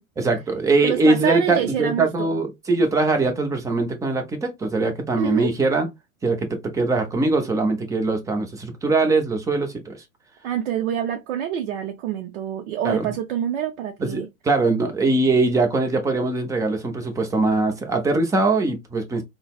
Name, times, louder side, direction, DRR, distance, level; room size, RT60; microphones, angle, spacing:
voice 1, 0.2-5.9 6.2-6.5 6.7-10.0 12.8-13.1 14.0-19.2, right 3 dB, 10° right, 0.5 m, -22 dB
voice 2, 0.8-2.4 5.2-5.5 10.4-14.3, right 10 dB, 60° right, 0.6 m, -26 dB
3.8 x 2.1 x 2.3 m
hypercardioid pair, 105°, 41 cm